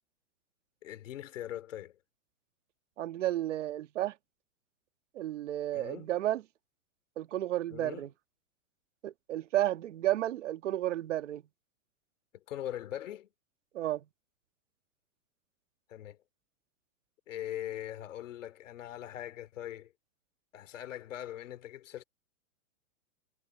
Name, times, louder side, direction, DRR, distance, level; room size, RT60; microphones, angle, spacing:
voice 1, 0.8-2.0 5.7-6.1 7.7-8.1 12.3-13.3 15.9-16.2 17.3-19.9 20.5-22.0, left 12 dB, 65° left, 2.7 m, -41 dB
voice 2, 3.0-4.1 5.1-6.4 7.2-8.1 9.0-11.4 13.7-14.0, right 13 dB, 60° right, 1.6 m, -32 dB
supercardioid pair, 175°, 40 cm